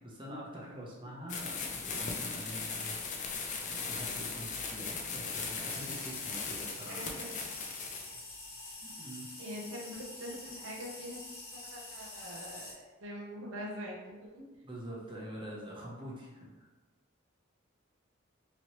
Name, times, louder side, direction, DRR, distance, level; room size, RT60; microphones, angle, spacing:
voice 1, 0.0-3.0 3.6-7.2 8.8-9.2 14.6-16.5, right 1 dB, 25° right, -5 dB, 0.7 m, -45 dB
sound 1, 1.3-8.2, left 4 dB, 40° left, 0.4 m, -38 dB
sound 2, 5.7-12.7, left 2 dB, 65° left, 0.9 m, -47 dB
voice 2, 6.8-7.3 9.4-11.2 11.5-14.5, equal, 90° right, -2 dB, 0.7 m, -44 dB
3.0 x 2.9 x 2.9 m, 1.2 s
head